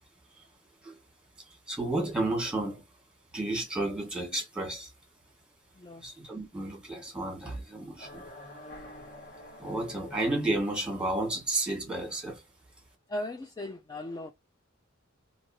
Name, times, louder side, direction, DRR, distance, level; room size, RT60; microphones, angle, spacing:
voice 1, 1.4-2.8 3.3-4.9 6.0-8.3 9.6-12.4, right 2 dB, 5° right, 1.3 m, -32 dB
voice 2, 5.7-6.0 13.1-14.3, left 1 dB, 20° left, 0.3 m, -37 dB
sound 1, 8.0-10.9, left 1 dB, 50° left, 1.0 m, -47 dB
2.9 x 2.7 x 2.6 m
head